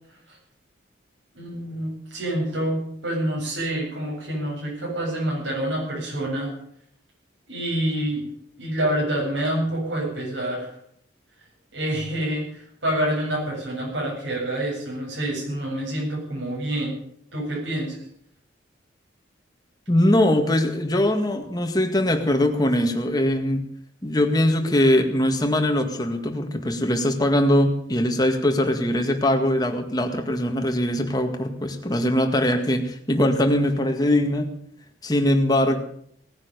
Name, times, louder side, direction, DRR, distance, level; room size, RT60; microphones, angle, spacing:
voice 1, 1.3-6.5 7.5-8.3 8.6-10.7 11.7-16.9 17.3-18.0, right 1 dB, 80° right, -4 dB, 7.9 m, -27 dB
voice 2, 19.9-23.7 24.0-34.5 35.0-35.8, left 1 dB, 20° left, 5 dB, 1.9 m, -21 dB
18.5 x 9.8 x 6.8 m, 0.68 s
head